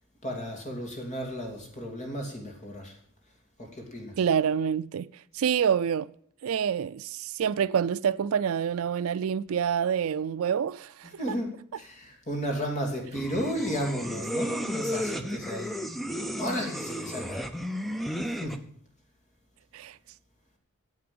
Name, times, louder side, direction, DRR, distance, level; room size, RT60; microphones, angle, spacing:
voice 1, 0.2-2.9 3.6-4.1 11.0-15.8 16.4-17.4 18.3-18.6, equal, 35° left, 2.8 m, -33 dB
voice 2, 4.2-5.1 5.3-6.1 6.4-11.4 19.7-20.0, right 7 dB, 70° right, 0.4 m, -27 dB
sound 1, 13.1-18.6, equal, ahead, 0.6 m, -33 dB
9.7 x 7.8 x 8.6 m
head